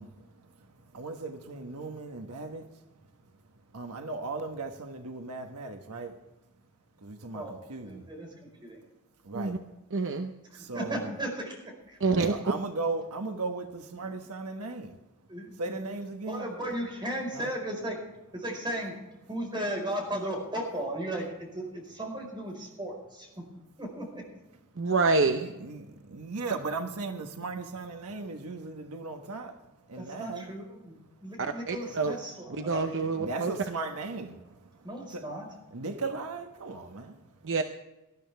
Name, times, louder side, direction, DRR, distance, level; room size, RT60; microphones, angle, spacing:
voice 1, 0.0-2.9 3.2-3.3 3.7-6.2 7.0-8.1 9.2-9.6 10.5-11.1 12.3-15.0 15.5-16.5 17.3-17.5 25.3-30.5 31.8-32.0 33.2-35.3 35.7-37.5, right 3 dB, 85° right, 1.2 m, -37 dB
voice 2, 7.8-8.8 10.7-12.0 15.3-15.8 16.3-18.0 18.3-18.9 19.3-23.4 23.8-24.2 30.0-30.9 31.2-33.3 34.8-35.5, right 1 dB, 20° right, 4.8 m, -36 dB
voice 3, 9.9-10.3 12.0-12.3 24.8-25.4 31.4-32.2 32.5-33.5 37.4-37.6, right 3 dB, 60° right, 0.8 m, -27 dB
19.5 x 12.5 x 3.4 m
head